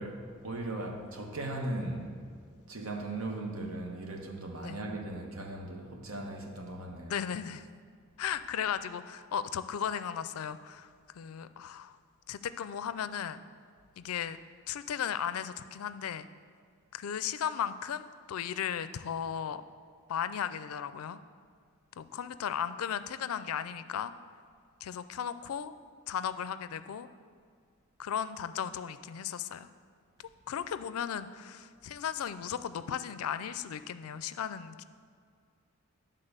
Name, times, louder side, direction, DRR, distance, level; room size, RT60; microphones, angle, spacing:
voice 1, 0.0-2.2 2.7-7.3 8.2-8.4, right 2 dB, 75° right, 1.1 m, -38 dB
voice 2, 7.1-7.7 8.2-10.9 11.1-12.0 12.3-13.4 14.0-14.4 14.7-16.3 16.9-19.6 20.1-21.2 22.0-24.1 24.8-25.7 26.1-27.1 28.0-29.7 30.5-34.8, left 8 dB, 85° left, 0.4 m, -36 dB
11.0 x 3.8 x 6.6 m
head